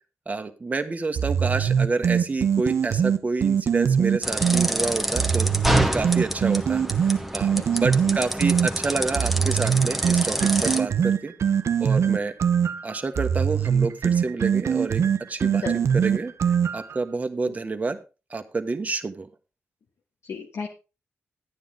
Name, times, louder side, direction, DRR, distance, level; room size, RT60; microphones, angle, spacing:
voice 1, 0.3-5.5 5.9-6.8 7.3-11.3 11.8-12.4 12.8-15.0 15.3-15.6 15.9-16.3 16.7-18.0 18.3-19.3, right 3 dB, 30° right, 7 dB, 1.2 m, -28 dB
sound 1, 1.2-4.7 5.2-8.7 9.2-17.0, right 7 dB, 75° right, 0.7 m, -22 dB
sound 2, 4.2-10.8, right 1 dB, 5° right, 1.2 m, -27 dB
voice 2, 7.5-8.2 15.6-15.7 17.5-17.6 20.2-20.7, left 5 dB, 80° left, 0 dB, 1.5 m, -34 dB
12.0 x 9.4 x 3.7 m, 0.30 s
wide cardioid pair, 105°, 5 cm